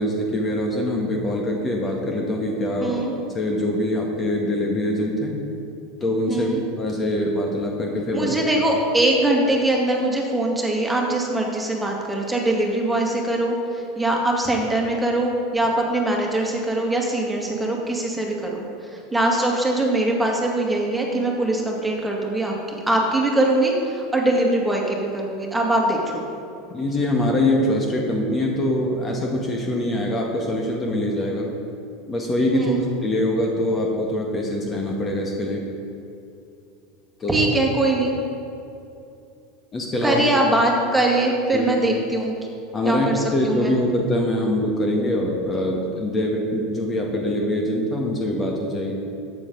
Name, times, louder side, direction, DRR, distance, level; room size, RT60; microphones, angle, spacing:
voice 1, 0.0-3.0 3.3-5.4 6.0-8.3 26.7-31.5 32.1-35.6 37.2-37.4 39.7-40.4 41.5-41.7 42.7-48.9, left 1 dB, 25° left, 0 dB, 1.6 m, -23 dB
voice 2, 2.8-3.1 6.3-6.6 8.1-26.2 32.5-32.8 37.3-38.1 40.0-42.3 42.9-43.7, right 1 dB, 10° right, -1 dB, 2.2 m, -22 dB
13.0 x 8.8 x 4.0 m, 2.7 s
figure-of-eight pair, 80°, 0 cm